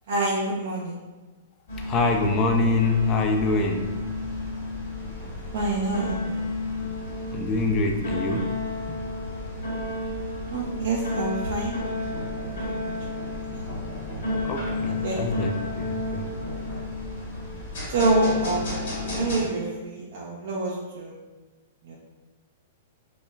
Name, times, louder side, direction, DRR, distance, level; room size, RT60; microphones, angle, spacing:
voice 1, 0.1-1.0 5.2-6.5 10.5-12.1 12.4-12.9 13.5-13.6 15.0-15.2 17.9-21.1 21.8-22.0, right 3 dB, 70° right, -4 dB, 0.4 m, -28 dB
sound 1, 1.7-19.4, left 2 dB, 65° left, 1.0 m, -31 dB
voice 2, 1.8-3.8 7.3-8.4 14.4-16.2, left 3 dB, 25° left, 3 dB, 0.3 m, -25 dB
2.9 x 2.1 x 2.3 m, 1.2 s
hypercardioid pair, 140°, 0 cm